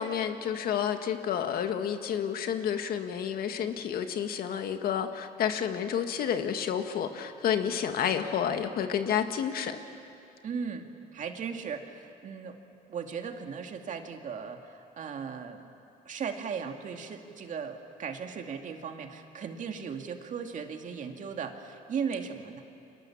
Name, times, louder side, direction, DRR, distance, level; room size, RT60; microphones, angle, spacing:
voice 1, 0.0-9.8, left 8 dB, 60° left, 7 dB, 1.8 m, -30 dB
voice 2, 10.4-10.8 11.1-12.6 12.9-15.7 16.1-22.6, right 6 dB, 50° right, 4 dB, 2.3 m, -37 dB
30.0 x 25.0 x 7.3 m, 2.7 s
cardioid pair, 110°, 17 cm